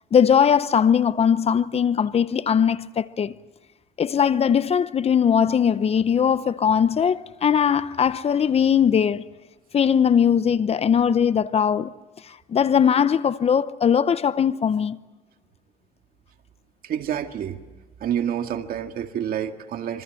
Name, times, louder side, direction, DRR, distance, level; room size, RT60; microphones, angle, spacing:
voice 1, 0.1-3.3 4.0-9.2 9.7-12.0 12.3-15.0, left 7 dB, 35° left, 0.8 m, -20 dB
voice 2, 16.8-17.6 18.0-20.0, right 9 dB, 60° right, 2.0 m, -28 dB
26.5 x 25.0 x 7.7 m
cardioid pair, 110°, 17 cm